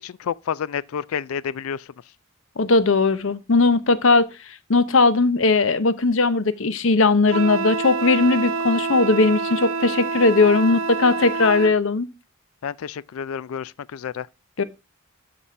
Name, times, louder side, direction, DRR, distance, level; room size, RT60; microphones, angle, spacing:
voice 1, 0.0-1.9 12.6-14.3, left 7 dB, 80° left, 0.4 m, -30 dB
voice 2, 2.6-4.3 4.7-12.1 14.6-14.7, left 3 dB, 65° left, 0.9 m, -18 dB
Wind instrument woodwind instrument, 7.3-11.8, right 4 dB, 75° right, 0.7 m, -27 dB
12.5 x 4.2 x 4.4 m
head